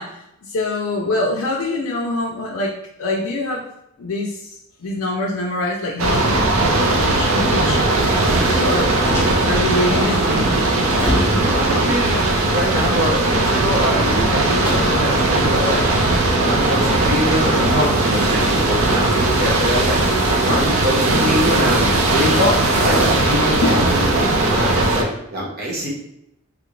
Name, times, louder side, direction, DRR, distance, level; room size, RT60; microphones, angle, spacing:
voice 1, 0.0-3.7 4.0-4.6 4.8-6.3 6.6-7.9 8.2-8.9 9.5-10.6 19.4-19.5 23.6-23.8, left 2 dB, 70° left, -2 dB, 0.5 m, -24 dB
sound 1, 6.0-25.0, right 2 dB, 80° right, 0.5 m, -18 dB
sound 2, 8.3-21.1, left 1 dB, 10° left, 0.4 m, -33 dB
voice 2, 9.8-10.4 11.3-15.9 16.4-20.0 20.4-25.9, equal, 50° right, -3 dB, 0.9 m, -24 dB
3.3 x 2.4 x 3.0 m, 0.81 s
head